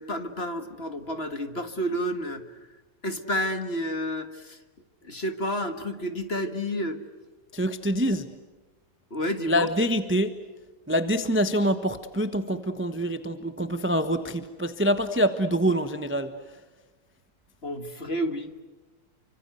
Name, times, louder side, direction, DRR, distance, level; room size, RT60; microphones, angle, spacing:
voice 1, 0.0-2.4 3.0-4.6 5.0-7.0 9.1-9.7 17.6-18.6, equal, 30° left, 8 dB, 1.7 m, -30 dB
voice 2, 7.5-8.3 9.5-10.3 10.9-16.3, equal, 10° right, 9 dB, 0.9 m, -25 dB
29.5 x 25.5 x 8.0 m, 1.2 s
omnidirectional pair, 2.4 m